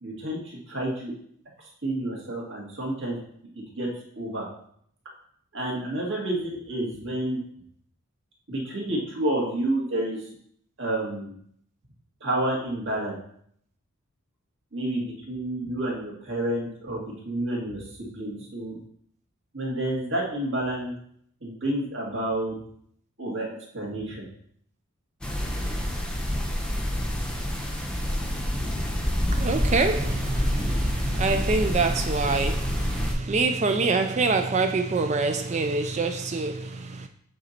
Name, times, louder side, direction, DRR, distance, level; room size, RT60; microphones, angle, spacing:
voice 1, 0.0-1.1 1.6-3.2 3.5-3.9 4.2-4.5 5.5-7.4 8.5-10.3 10.8-11.4 12.2-13.2 14.7-18.8 19.5-20.9 21.4-22.6 23.2-24.3, right 1 dB, 55° right, -3 dB, 1.9 m, -29 dB
sound 1, 25.2-33.1, equal, 5° left, 0.8 m, -27 dB
voice 2, 29.3-37.1, right 3 dB, 30° right, 7 dB, 0.3 m, -26 dB
7.6 x 4.0 x 4.3 m, 0.67 s
head